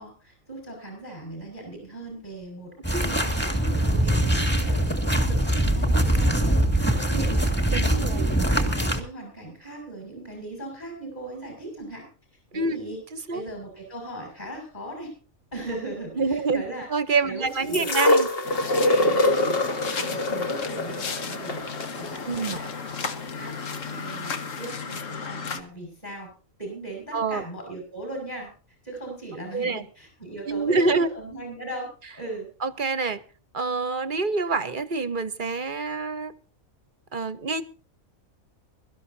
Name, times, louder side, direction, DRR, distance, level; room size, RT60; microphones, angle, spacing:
voice 1, 0.0-12.1 12.5-13.0 13.3-15.1 15.5-16.9 17.2-17.9 18.6-21.6 22.0-22.7 23.3-23.6 23.8-26.3 26.6-28.5 28.8-31.9 32.1-32.5, right 2 dB, 30° left, 3 dB, 6.3 m, -38 dB
sound 1, 2.8-9.0, right 1 dB, 5° left, 2.0 m, -23 dB
voice 2, 7.7-8.2 12.5-12.8 13.3-13.4 16.2-16.6 16.9-18.3 22.3-22.6 27.1-27.4 29.5-29.8 30.5-31.1 32.6-33.2 33.5-36.3 37.1-37.6, right 4 dB, 45° right, 13 dB, 0.9 m, -26 dB
sound 2, 17.7-23.8 24.6-24.7, left 2 dB, 45° left, 1.6 m, -25 dB
sound 3, 18.4-25.6, left 5 dB, 65° left, 1.7 m, -34 dB
23.0 x 13.0 x 2.7 m, 0.36 s
omnidirectional pair, 1.4 m